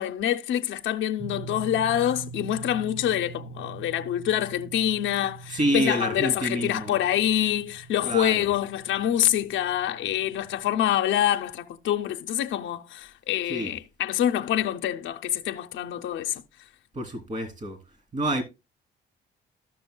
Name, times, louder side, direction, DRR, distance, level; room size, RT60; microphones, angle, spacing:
voice 1, 0.0-16.4, left 11 dB, 75° left, 0.6 m, -26 dB
sound 1, 1.2-10.9, right 4 dB, 10° right, 0.9 m, -43 dB
voice 2, 5.5-7.0 8.0-8.5 13.5-13.7 16.9-17.8 18.1-18.4, right 1 dB, 40° right, 2.9 m, -27 dB
13.5 x 6.2 x 2.2 m
cardioid pair, 90°, 20 cm